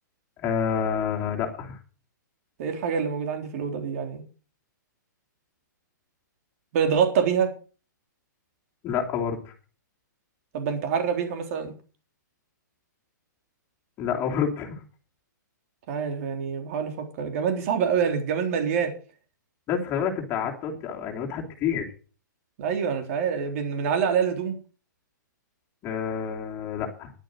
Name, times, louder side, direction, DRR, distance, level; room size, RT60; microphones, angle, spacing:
voice 1, 0.4-1.8 8.8-9.5 14.0-14.8 19.7-21.9 25.8-27.1, left 7 dB, 25° left, 0 dB, 3.1 m, -28 dB
voice 2, 2.6-4.2 6.7-7.5 10.5-11.7 15.9-18.9 22.6-24.6, right 7 dB, 45° right, 5 dB, 3.7 m, -26 dB
11.5 x 9.2 x 6.5 m, 0.38 s
hypercardioid pair, 145°, 10 cm